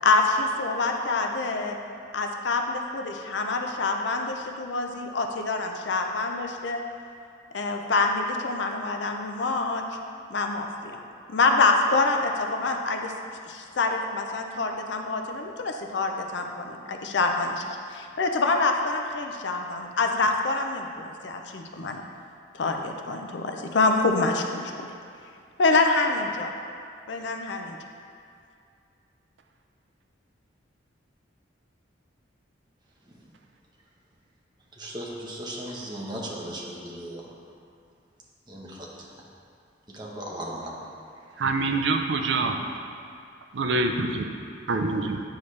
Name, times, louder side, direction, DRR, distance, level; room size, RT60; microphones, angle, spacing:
voice 1, 0.0-1.8 2.1-6.8 7.5-9.8 10.3-11.0 11.3-13.1 13.5-17.7 17.9-22.0 22.5-24.6 25.6-26.5 27.1-27.7, left 3 dB, 60° left, 3 dB, 0.5 m, -26 dB
voice 2, 34.7-37.2 38.5-39.3 39.9-40.7 41.3-41.4, right 1 dB, 20° right, -4 dB, 0.9 m, -37 dB
voice 3, 41.4-42.6 43.5-44.3 44.7-45.2, right 3 dB, 65° right, 5 dB, 0.5 m, -25 dB
8.5 x 5.6 x 3.2 m, 2.4 s
head